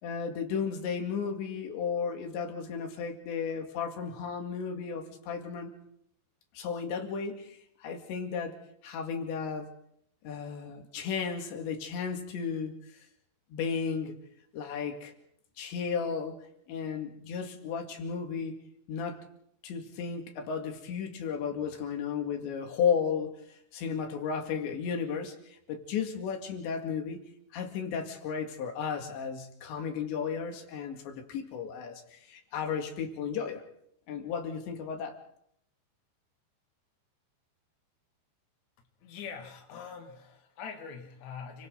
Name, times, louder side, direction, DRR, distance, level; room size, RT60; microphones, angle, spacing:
voice 1, 0.0-5.7 6.5-9.7 10.2-13.1 13.5-14.2 14.5-15.1 15.6-18.6 18.9-19.2 19.6-27.2 27.5-33.6 34.1-35.2, left 6 dB, 85° left, 4.5 m, -34 dB
voice 2, 39.0-41.7, left 6 dB, 45° left, 3.4 m, -43 dB
30.0 x 24.0 x 4.0 m
omnidirectional pair, 5.0 m